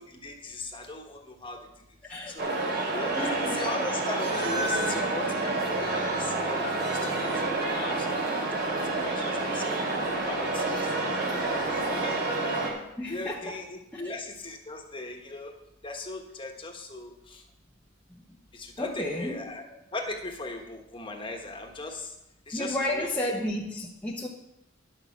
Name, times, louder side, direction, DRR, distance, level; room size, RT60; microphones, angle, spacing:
voice 1, 0.0-1.7 2.3-2.5 2.9-8.2 8.7-10.9 11.4-15.6 15.8-17.5 18.5-19.6 19.9-22.2 22.5-23.1, left 2 dB, 25° left, 3 dB, 1.4 m, -39 dB
voice 2, 2.0-2.4 3.2-3.7 13.0-13.6 13.9-14.1 18.8-19.6 22.5-24.3, left 1 dB, 10° left, -3 dB, 1.0 m, -32 dB
sound 1, 2.4-12.7, right 2 dB, 55° right, 3.2 m, -28 dB
10.5 x 6.6 x 7.1 m, 0.86 s
head